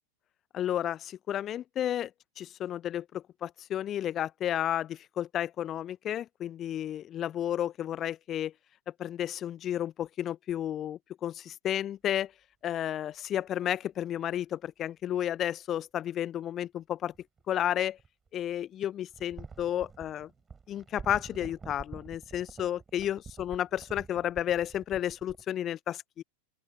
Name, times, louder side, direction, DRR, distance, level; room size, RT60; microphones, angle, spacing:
voice 1, 0.5-2.1 2.4-8.5 9.0-12.3 12.6-17.1 17.5-18.0 18.3-20.3 20.7-26.2, left 11 dB, 30° left, 0.9 m, -32 dB
sound 1, 17.1-18.3 19.1-25.4, right 5 dB, 15° right, 7.0 m, -48 dB
open air
figure-of-eight pair, 90°, 0 cm